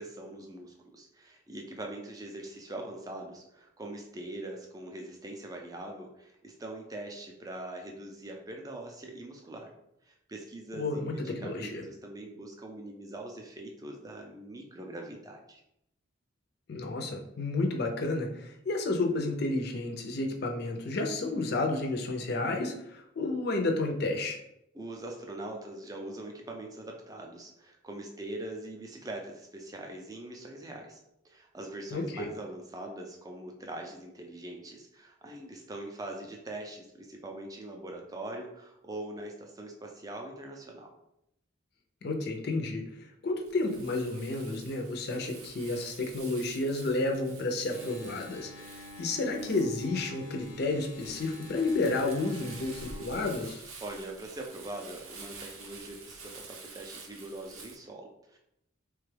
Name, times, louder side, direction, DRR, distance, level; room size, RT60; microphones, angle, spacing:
voice 1, 0.0-9.7 10.0-15.6 24.7-31.0 31.2-40.9 53.8-58.4, right 1 dB, 15° right, 1 dB, 0.4 m, -42 dB
voice 2, 10.7-11.8 16.7-24.4 31.9-32.3 42.0-42.8 43.2-53.6, left 2 dB, 50° left, 3 dB, 0.5 m, -31 dB
Crumpling crinkling, 43.4-57.8, right 4 dB, 90° right, 0.6 m, -49 dB
Engine, 47.7-53.2, left 1 dB, 85° left, 0.7 m, -48 dB
3.2 x 2.3 x 3.2 m, 0.81 s
head